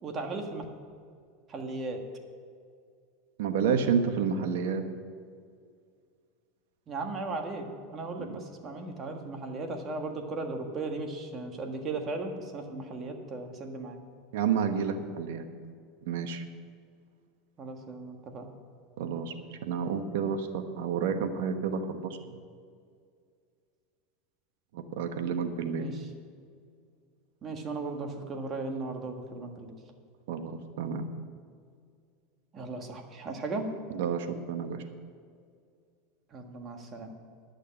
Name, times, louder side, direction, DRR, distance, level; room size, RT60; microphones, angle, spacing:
voice 1, 0.0-0.6 1.5-2.0 6.9-14.0 17.6-18.5 25.8-25.9 27.4-29.7 32.5-33.7 36.3-37.1, right 3 dB, 30° right, 4 dB, 1.5 m, -36 dB
voice 2, 3.4-4.8 8.2-8.4 14.3-15.4 16.1-16.4 19.0-22.3 24.7-25.9 30.3-31.1 33.9-34.8, right 6 dB, 75° right, 7 dB, 1.1 m, -30 dB
11.0 x 6.5 x 8.8 m, 2.1 s
supercardioid pair, 135°, 0 cm